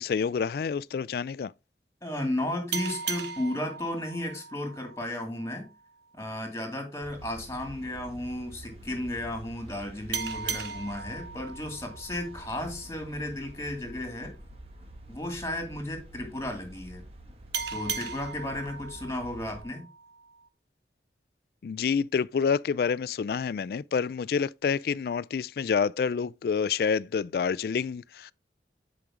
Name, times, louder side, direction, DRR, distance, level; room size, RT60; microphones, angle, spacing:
voice 1, 0.0-1.5 21.6-28.3, left 6 dB, 55° left, 0.3 m, -28 dB
voice 2, 2.0-5.7 6.2-14.3 15.1-17.0 17.7-19.8, left 1 dB, 15° left, 2.6 m, -34 dB
sound 1, 2.7-5.9 10.1-13.4 17.5-20.5, right 6 dB, 80° right, 1.2 m, -38 dB
sound 2, 7.0-19.6, right 1 dB, 35° right, 1.6 m, -47 dB
9.9 x 5.1 x 3.7 m
head